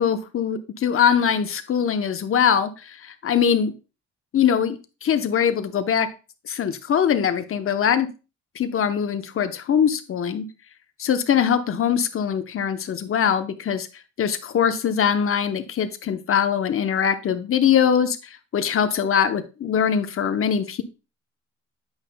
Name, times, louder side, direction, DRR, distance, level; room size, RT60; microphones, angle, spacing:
voice 1, 0.0-2.7 3.2-3.7 4.3-6.1 6.5-8.1 8.6-10.5 11.0-13.9 14.2-18.2 18.5-20.8, left 8 dB, 45° left, 9 dB, 0.8 m, -22 dB
8.9 x 5.3 x 2.2 m, 0.32 s
cardioid pair, 90°, 30 cm